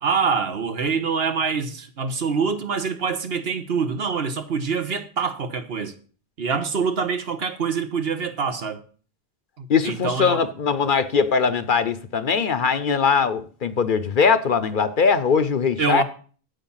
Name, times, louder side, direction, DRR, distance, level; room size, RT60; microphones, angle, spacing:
voice 1, 0.0-5.9 6.4-8.8 9.6-10.4 15.8-16.0, right 5 dB, 70° right, 1.4 m, -25 dB
voice 2, 9.7-16.0, left 6 dB, 55° left, 0.8 m, -21 dB
9.1 x 8.6 x 5.6 m
omnidirectional pair, 1.1 m